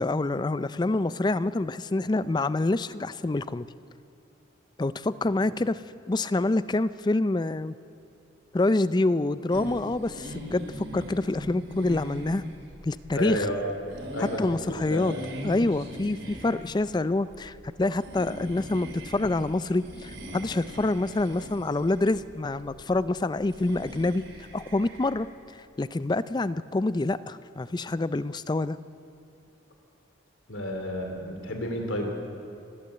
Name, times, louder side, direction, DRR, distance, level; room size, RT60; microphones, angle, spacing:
voice 1, 0.0-3.7 4.8-5.8 6.1-7.7 8.5-12.4 12.8-13.5 14.4-15.1 15.4-24.2 24.5-25.3 25.5-28.8, left 2 dB, 20° left, 15 dB, 0.4 m, -27 dB
sound 1, 9.5-25.3, equal, 75° right, 3.8 m, -41 dB
voice 2, 13.1-13.6 14.1-15.1 30.5-32.1, left 1 dB, 85° left, 3 dB, 2.7 m, -31 dB
29.5 x 11.5 x 7.8 m, 2.6 s
head